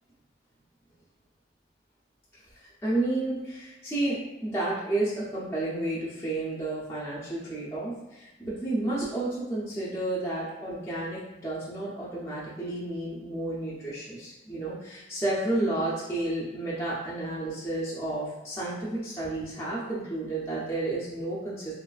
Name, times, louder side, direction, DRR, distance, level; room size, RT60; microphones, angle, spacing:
voice 1, 2.6-21.7, right 2 dB, 15° left, -9 dB, 0.6 m, -31 dB
3.1 x 2.3 x 2.4 m, 0.97 s
head